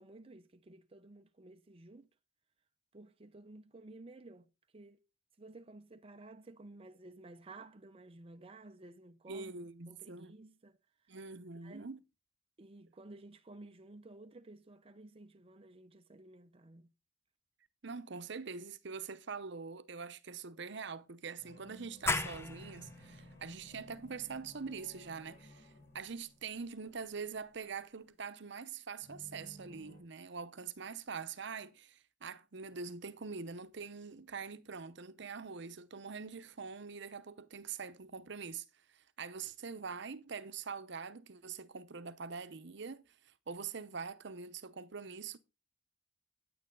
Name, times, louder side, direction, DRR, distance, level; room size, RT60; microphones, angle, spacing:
voice 1, 0.0-2.1 2.9-5.0 5.4-9.5 9.9-10.8 11.0-11.2 11.6-11.9 12.6-16.9, right 2 dB, 30° right, 0.6 m, -54 dB
voice 2, 9.3-10.4 11.1-12.0 17.8-45.4, right 5 dB, 65° right, 0.8 m, -44 dB
sound 1, 21.4-26.8 29.0-30.0, equal, 55° left, 6.8 m, -57 dB
sound 2, 22.1-27.4, left 2 dB, 15° left, 0.7 m, -41 dB
9.4 x 9.2 x 3.9 m
head